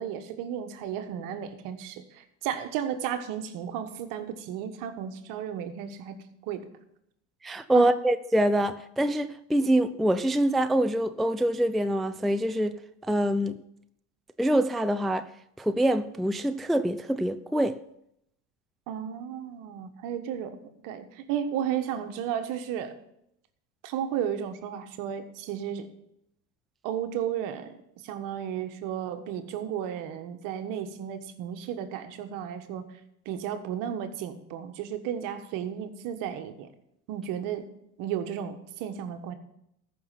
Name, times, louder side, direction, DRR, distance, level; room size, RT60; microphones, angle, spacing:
voice 1, 0.0-6.1 6.5-6.7 7.7-7.9 18.9-22.9 23.8-25.9 26.8-27.8 28.0-32.9 33.2-36.7 37.1-37.7 38.0-39.4, right 9 dB, 65° right, 1.4 m, -33 dB
voice 2, 7.4-12.8 13.1-13.6 14.4-15.3 15.6-17.8, right 1 dB, ahead, 0.4 m, -25 dB
14.0 x 5.8 x 5.8 m
supercardioid pair, 90°, 35 cm